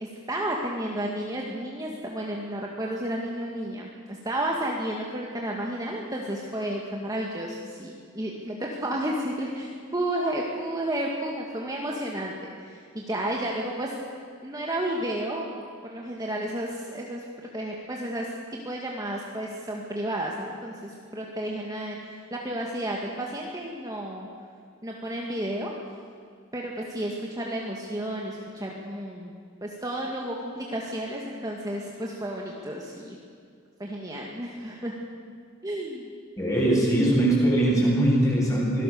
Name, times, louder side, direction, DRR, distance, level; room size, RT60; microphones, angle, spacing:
voice 1, 0.0-14.0 14.4-15.5 15.9-17.2 17.5-24.3 24.8-25.7 26.5-29.3 29.6-33.2 33.8-34.9 35.6-36.1, right 1 dB, 20° right, -2 dB, 2.0 m, -32 dB
voice 2, 36.4-38.8, right 1 dB, 15° left, -4 dB, 7.9 m, -21 dB
25.5 x 17.5 x 7.0 m, 2.2 s
head